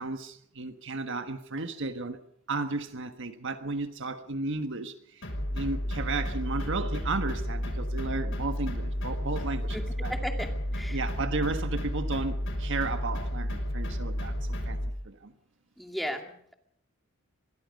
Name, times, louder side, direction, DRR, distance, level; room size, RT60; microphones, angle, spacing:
voice 1, 0.0-2.2 2.5-5.2 5.5-10.1 10.9-14.8 15.0-15.3, right 3 dB, 55° right, 1.5 m, -34 dB
sound 1, 5.2-14.9, equal, 60° left, 5.8 m, -32 dB
voice 2, 10.1-11.0 15.8-16.5, equal, ahead, 2.4 m, -36 dB
24.5 x 21.5 x 5.3 m
head